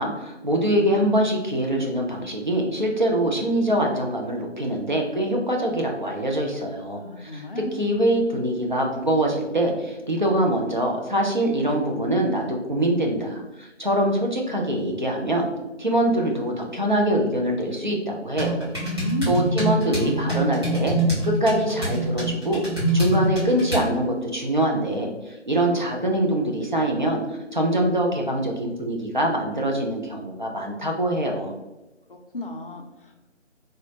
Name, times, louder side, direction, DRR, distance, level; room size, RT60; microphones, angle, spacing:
voice 1, 0.0-15.5 15.8-18.7 19.3-20.9 21.2-22.6 22.9-31.6, right 1 dB, 40° right, 0 dB, 0.4 m, -24 dB
voice 2, 6.9-7.7 18.7-19.4 32.1-33.3, equal, 50° left, 2 dB, 0.4 m, -32 dB
sound 1, 18.4-23.9, right 1 dB, 20° right, 0.8 m, -25 dB
3.6 x 2.2 x 2.6 m, 1.0 s
figure-of-eight pair, 160°, 37 cm